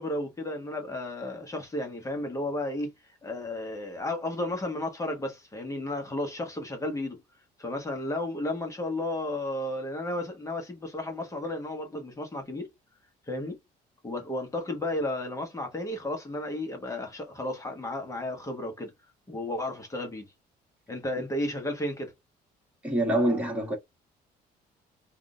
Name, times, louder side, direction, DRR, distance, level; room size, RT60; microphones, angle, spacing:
voice 1, 0.0-2.9 3.2-7.2 7.6-12.7 13.3-13.6 14.0-18.9 19.3-20.2 20.9-22.1, left 1 dB, 20° left, 1.2 m, -33 dB
voice 2, 22.8-23.8, right 1 dB, 10° right, 1.8 m, -25 dB
3.6 x 2.5 x 2.3 m
cardioid pair, 110°, 17 cm